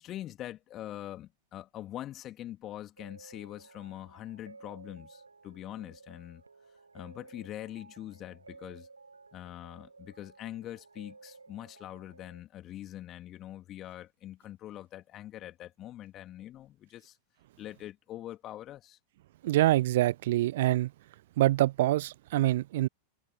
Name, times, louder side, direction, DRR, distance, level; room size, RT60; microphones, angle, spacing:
voice 1, 0.0-6.4 6.9-8.9 9.3-17.2 17.6-19.0, left 13 dB, 30° left, 2.8 m, -43 dB
sound 1, 3.0-12.4, right 4 dB, 80° right, 6.9 m, -55 dB
voice 2, 19.4-20.9 21.4-22.9, right 15 dB, 55° right, 0.4 m, -25 dB
figure-of-eight pair, 90°, 0 cm